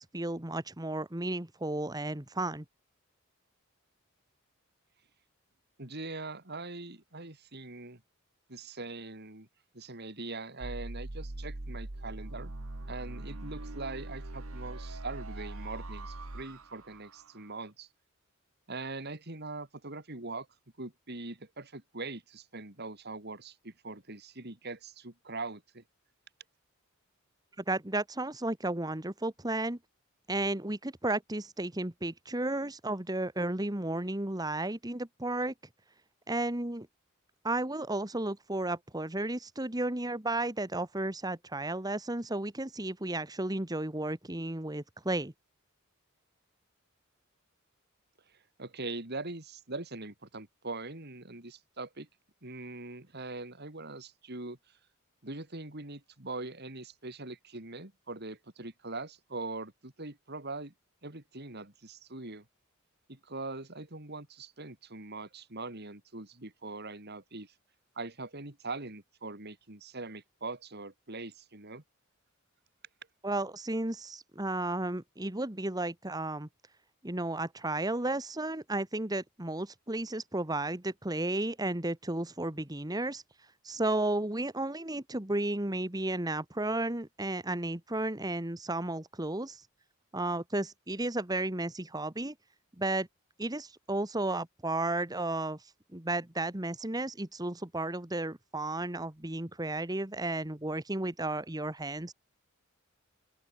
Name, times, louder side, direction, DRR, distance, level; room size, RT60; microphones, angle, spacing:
voice 1, 0.0-2.6 27.7-29.8 30.3-35.5 36.3-36.9 37.4-45.3 73.2-76.5 77.0-83.2 83.6-89.7 90.1-92.3 92.8-93.1 93.4-102.1, right 2 dB, 20° right, 1.6 m, -33 dB
voice 2, 5.8-8.0 8.5-9.5 9.7-12.5 12.9-17.9 18.7-20.5 20.8-25.8 48.6-52.1 52.4-54.6 55.2-60.7 61.0-62.4 63.1-67.5 67.9-71.8, right 3 dB, 50° right, 3.3 m, -42 dB
sound 1, 10.6-17.6, right 2 dB, 80° right, 1.7 m, -41 dB
open air
head